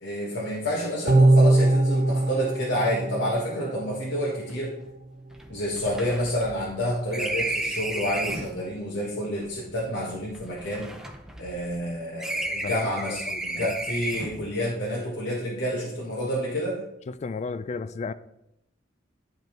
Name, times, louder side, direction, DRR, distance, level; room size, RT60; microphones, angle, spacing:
voice 1, 0.0-4.7 5.5-10.9 11.4-16.8, equal, 65° left, 1.2 m, -29 dB
sound 1, 1.1-4.4 4.8-4.9, right 2 dB, 45° right, 0.8 m, -22 dB
sound 2, 4.5-4.6 4.8-4.9 5.3-8.6 9.5-11.9 12.2-14.5, right 2 dB, 5° right, 0.6 m, -33 dB
voice 2, 13.3-13.8 17.1-18.1, left 4 dB, 35° left, 0.3 m, -33 dB
10.5 x 5.2 x 3.1 m
head